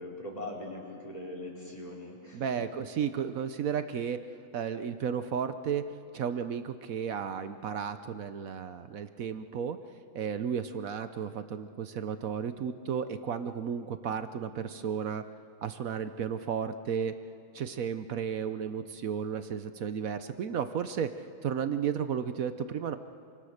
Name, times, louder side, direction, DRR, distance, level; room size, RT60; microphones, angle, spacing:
voice 1, 0.0-2.6, left 1 dB, 20° left, -2 dB, 4.6 m, -41 dB
voice 2, 2.3-4.2 4.5-5.8 6.1-9.8 10.1-15.2 15.6-17.1 17.5-21.1 21.4-23.0, right 7 dB, 60° right, 10 dB, 0.9 m, -33 dB
28.0 x 24.5 x 6.6 m, 2.4 s
omnidirectional pair, 2.2 m